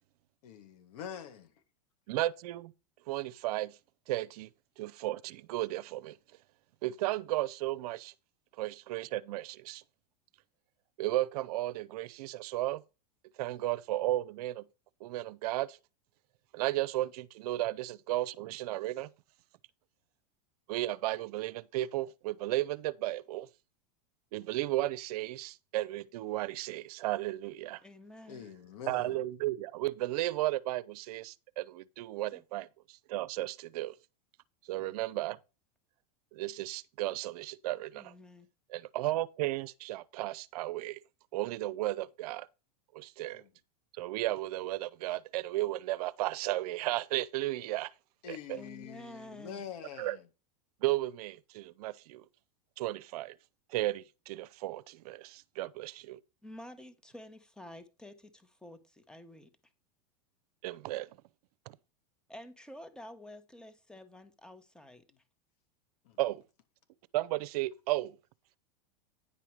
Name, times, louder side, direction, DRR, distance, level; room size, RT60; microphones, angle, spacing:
voice 1, 0.4-1.5 13.5-13.6 28.3-29.2 34.8-35.0 43.3-43.5 48.2-50.3 66.0-66.2, left 8 dB, 70° left, 2.1 m, -45 dB
voice 2, 2.1-2.7 3.1-3.7 4.1-4.5 4.8-6.2 6.8-8.1 8.6-9.8 11.0-12.8 13.4-14.7 15.0-15.8 16.5-19.1 20.7-23.5 24.3-27.8 28.9-33.9 34.7-35.4 36.3-38.1 38.7-41.0 41.3-42.5 42.9-43.4 44.0-47.9 48.3-48.6 50.0-50.2 50.8-52.2 52.8-53.3 53.7-56.2 60.6-61.1 61.7-61.8 66.2-66.4 67.1-68.1, right 16 dB, 70° right, 0.6 m, -34 dB
voice 3, 27.8-28.4 32.3-32.4 38.0-38.5 48.5-49.6 56.4-59.5 62.3-65.0, left 1 dB, 5° left, 1.1 m, -50 dB
9.9 x 5.7 x 4.7 m
supercardioid pair, 120°, 20 cm